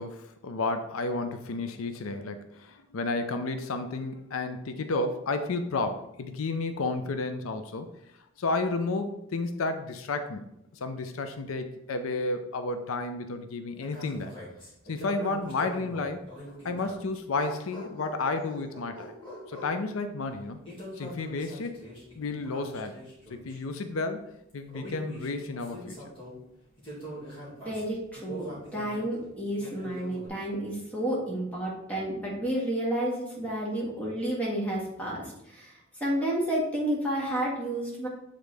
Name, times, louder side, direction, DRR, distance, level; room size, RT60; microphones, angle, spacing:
voice 1, 0.0-7.9 8.4-14.3 14.9-16.2 16.6-19.1 19.5-20.6 21.0-21.8 22.1-23.0 23.3-24.3 24.5-26.0, left 3 dB, 85° left, 8 dB, 0.5 m, -32 dB
sound 1, 13.8-17.0 17.3-19.8 20.6-23.6 24.5-26.4 26.8-29.1 29.5-30.3, equal, 25° left, 2.1 m, -43 dB
voice 2, 27.7-38.1, right 1 dB, 5° left, -5 dB, 1.8 m, -31 dB
8.2 x 3.8 x 3.4 m, 0.81 s
head